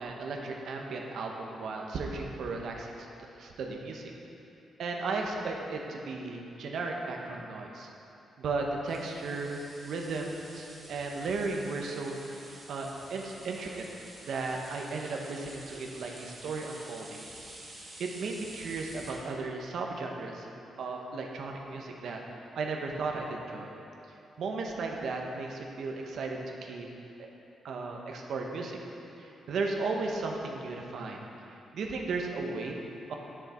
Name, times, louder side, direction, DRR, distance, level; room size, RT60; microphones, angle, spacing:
voice 1, 0.0-3.1 3.4-4.0 4.8-7.9 8.4-13.9 14.2-17.2 18.0-20.5 20.8-22.2 22.5-23.7 24.4-26.9 27.6-28.8 29.2-31.2 31.5-32.7 33.1-33.2, right 3 dB, 70° right, 1 dB, 1.0 m, -35 dB
sound 1, 8.9-19.1, right 1 dB, 25° right, 2.0 m, -49 dB
10.5 x 6.5 x 4.4 m, 2.8 s
cardioid pair, 140°, 0 cm